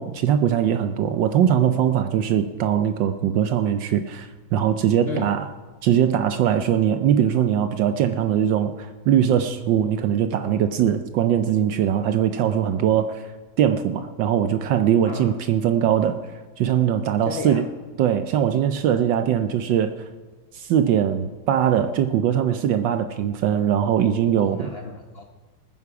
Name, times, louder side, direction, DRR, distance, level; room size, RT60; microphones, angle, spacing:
voice 1, 0.0-5.5 5.8-13.2 13.6-16.2 16.6-17.7 18.0-19.9 20.5-24.7, right 9 dB, 70° right, 9 dB, 1.2 m, -21 dB
voice 2, 15.1-15.4 17.2-17.6 24.4-25.2, left 5 dB, 75° left, 3 dB, 0.5 m, -33 dB
20.0 x 9.6 x 4.8 m, 1.3 s
omnidirectional pair, 2.3 m